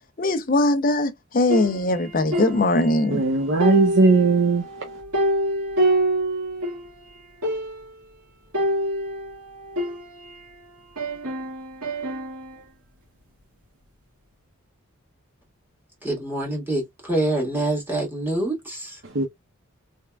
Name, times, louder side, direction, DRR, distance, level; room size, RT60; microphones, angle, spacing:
voice 1, 0.2-3.2, left 2 dB, 40° left, 0.6 m, -21 dB
sound 1, 1.5-3.3 3.6-6.9 7.2-7.3 7.4-8.0 8.5-10.5 11.0-12.6, right 1 dB, 85° right, 1.9 m, -26 dB
voice 2, 3.1-4.6 19.1-19.2, right 3 dB, 55° right, 0.7 m, -18 dB
voice 3, 16.0-19.0, right 1 dB, 10° right, 1.7 m, -26 dB
3.5 x 3.4 x 2.2 m
head